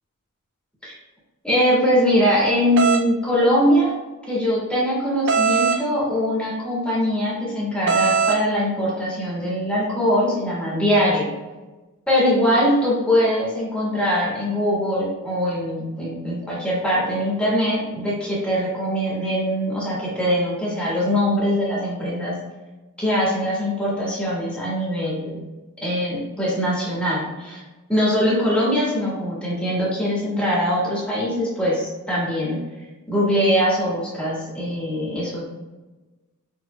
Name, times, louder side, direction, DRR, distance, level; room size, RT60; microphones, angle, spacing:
voice 1, 1.4-3.9 4.3-11.3 12.1-22.4 23.0-25.4 25.8-27.6 27.9-32.6 33.1-35.4, equal, 5° left, -7 dB, 1.5 m, -22 dB
sound 1, 2.8-3.1 5.3-5.8 7.9-8.4, right 5 dB, 55° right, 0.4 m, -20 dB
6.2 x 3.8 x 2.2 m, 1.2 s
head